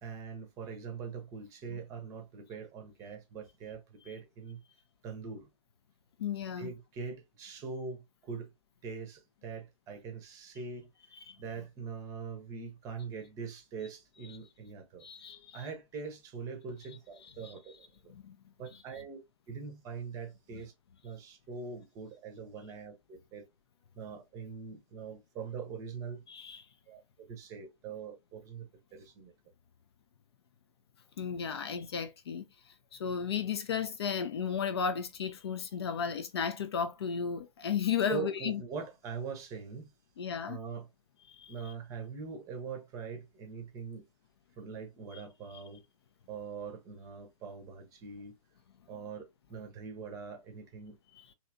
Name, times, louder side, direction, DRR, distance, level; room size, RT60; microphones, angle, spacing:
voice 1, 0.0-4.6 5.0-5.5 6.6-8.5 8.8-10.9 11.4-15.0 15.5-18.1 18.6-19.2 19.5-20.7 21.0-23.5 24.0-26.2 26.9-27.0 27.3-29.3 38.1-39.9 40.5-40.9 41.5-44.0 44.6-45.8 46.3-48.3 48.9-51.0, right 5 dB, 20° right, 0.7 m, -42 dB
voice 2, 6.2-6.7 11.3-11.4 15.0-15.6 17.4-17.5 18.2-18.4 26.3-26.6 31.2-32.4 32.9-38.6 40.2-40.6 41.3-41.5 45.1-45.2 51.2-51.3, left 7 dB, 50° left, 0.4 m, -34 dB
3.1 x 2.7 x 2.5 m
figure-of-eight pair, 120°, 18 cm